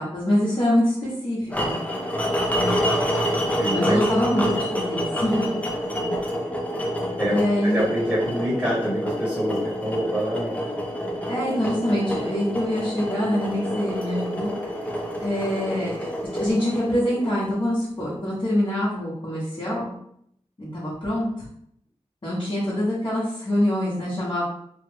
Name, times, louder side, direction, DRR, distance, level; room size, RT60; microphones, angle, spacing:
voice 1, 0.0-1.8 2.5-2.8 3.7-4.5 4.7-5.5 5.9-6.1 7.2-7.8 11.3-14.5 15.2-19.9 20.6-21.4 22.2-24.4, left 1 dB, 40° left, -9 dB, 1.1 m, -25 dB
sound 1, 1.5-17.6, equal, 10° left, 0.6 m, -28 dB
voice 2, 3.6-4.2 4.5-4.7 7.2-10.7, equal, 10° right, -7 dB, 1.1 m, -26 dB
3.2 x 2.1 x 3.3 m, 0.71 s
wide cardioid pair, 80°, 11 cm